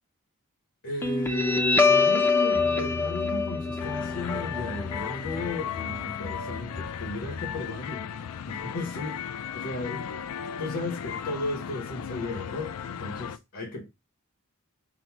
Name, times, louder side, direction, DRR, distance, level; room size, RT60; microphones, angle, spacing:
voice 1, 0.8-8.1 8.5-10.2 10.6-13.9, left 2 dB, 70° left, 1.0 m, -35 dB
Guitar, 1.0-8.0, left 4 dB, 10° left, 0.3 m, -26 dB
sound 1, 3.8-13.4, left 8 dB, 85° left, 0.4 m, -36 dB
3.9 x 2.1 x 4.4 m
head